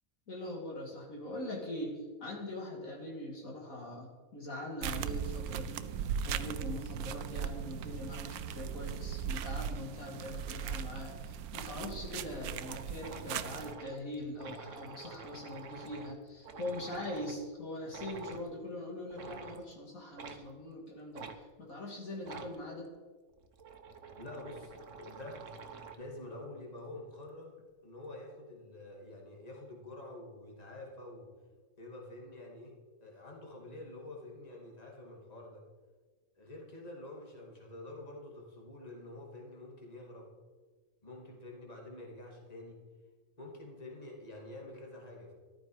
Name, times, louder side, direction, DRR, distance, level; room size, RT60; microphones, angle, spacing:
voice 1, 0.3-21.3 21.6-22.9, left 1 dB, 65° left, -1 dB, 2.7 m, -42 dB
sound 1, 4.8-13.7, right 8 dB, 85° right, 1.1 m, -38 dB
sound 2, 12.6-17.4 17.9-18.5 19.1-19.6 20.2-20.4 21.1-21.4 22.2-22.6 23.3-26.1, right 5 dB, 60° right, 1.3 m, -48 dB
voice 2, 24.2-25.4 26.0-27.5 27.8-31.3 31.8-32.7 33.0-35.6 36.3-40.3 41.0-42.8 43.4-45.3, left 2 dB, 25° left, -1 dB, 2.6 m, -47 dB
14.0 x 12.5 x 4.8 m, 1.4 s
omnidirectional pair, 1.6 m